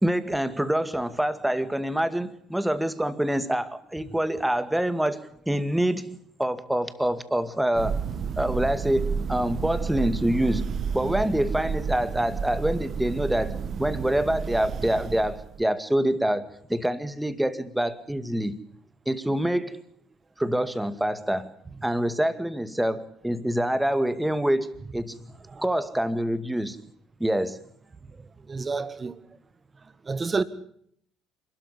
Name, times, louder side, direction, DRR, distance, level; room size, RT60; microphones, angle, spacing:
voice 1, 0.0-8.0 8.4-10.7 10.9-18.6 19.1-19.8 20.4-21.5 21.8-25.3 25.6-26.8 27.2-27.6, right 1 dB, 5° right, 2.1 m, -26 dB
Thunder, 7.7-15.6, right 6 dB, 50° right, 1.4 m, -31 dB
voice 2, 28.5-29.1 30.1-30.4, right 4 dB, 30° right, 1.7 m, -28 dB
27.0 x 13.0 x 9.9 m
hypercardioid pair, 60°, 0 cm